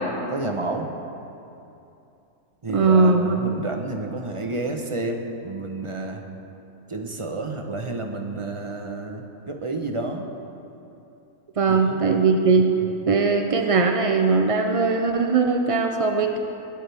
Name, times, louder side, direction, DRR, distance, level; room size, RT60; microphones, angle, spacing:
voice 1, 0.3-0.9 2.6-6.2 6.9-10.3 11.7-12.0 12.8-12.9, right 2 dB, 25° right, 3 dB, 0.9 m, -30 dB
voice 2, 2.7-3.6 11.6-12.7 13.1-16.4, right 4 dB, 55° right, 4 dB, 0.3 m, -20 dB
20.0 x 12.0 x 3.5 m, 2.8 s
omnidirectional pair, 1.5 m